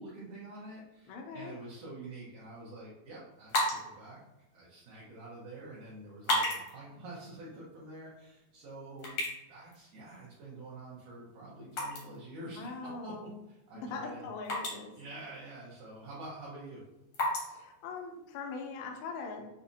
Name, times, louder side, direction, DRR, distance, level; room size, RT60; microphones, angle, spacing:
voice 1, 0.0-4.2 4.5-9.2 9.4-14.2 14.9-16.8, right 2 dB, 70° right, -7 dB, 2.1 m, -47 dB
voice 2, 1.1-1.6 12.6-13.3 13.7-14.9 17.5-19.5, left 4 dB, 85° left, 1 dB, 2.5 m, -41 dB
sound 1, 3.3-18.7, left 1 dB, 65° left, 1.6 m, -39 dB
7.1 x 2.4 x 2.7 m, 0.98 s
omnidirectional pair, 4.5 m